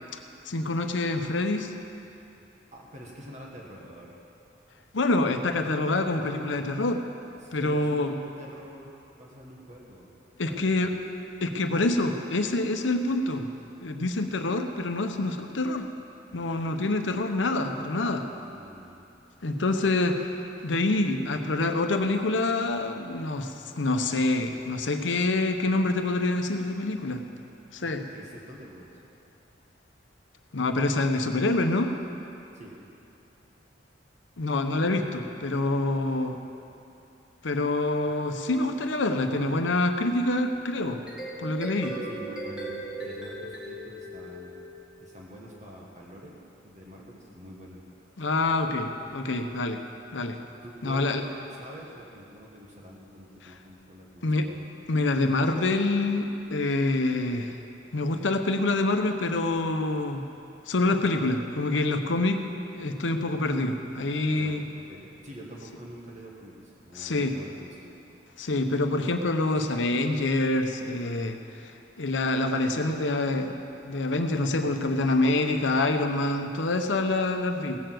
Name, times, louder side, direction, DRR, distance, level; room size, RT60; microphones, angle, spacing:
voice 1, 0.4-1.7 4.9-7.0 7.5-8.1 10.4-10.9 11.4-13.5 13.8-15.9 16.3-18.3 19.4-20.2 20.6-27.3 27.7-28.0 30.5-31.9 34.4-36.4 37.4-41.0 41.4-42.0 48.2-49.8 50.1-50.4 50.8-51.2 54.2-54.5 54.9-57.6 57.9-60.3 60.7-62.4 62.7-64.6 66.9-67.4 68.4-71.7 72.0-77.8, left 2 dB, 80° left, 6 dB, 0.8 m, -26 dB
voice 2, 2.7-4.2 7.4-10.1 10.4-11.0 16.4-16.8 18.5-19.0 27.8-29.0 32.5-32.8 42.0-44.6 45.0-47.8 50.6-54.6 64.3-68.0, equal, 40° right, -3 dB, 1.6 m, -46 dB
sound 1, 40.9-45.2, right 1 dB, 5° right, 2.2 m, -38 dB
17.0 x 6.9 x 7.7 m, 2.8 s
head